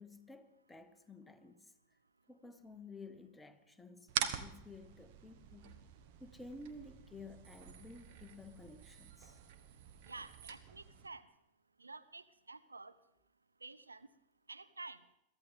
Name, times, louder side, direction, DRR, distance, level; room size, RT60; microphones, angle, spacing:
voice 1, 0.0-1.7 2.3-5.8 6.2-9.4, left 3 dB, 5° left, 1.1 m, -53 dB
sound 1, 4.1-11.1, right 9 dB, 50° right, 1.2 m, -45 dB
voice 2, 10.0-11.3 11.8-12.9 13.6-14.1 14.5-15.0, right 3 dB, 80° right, 0.6 m, -50 dB
22.5 x 14.0 x 3.7 m
figure-of-eight pair, 90°, 0 cm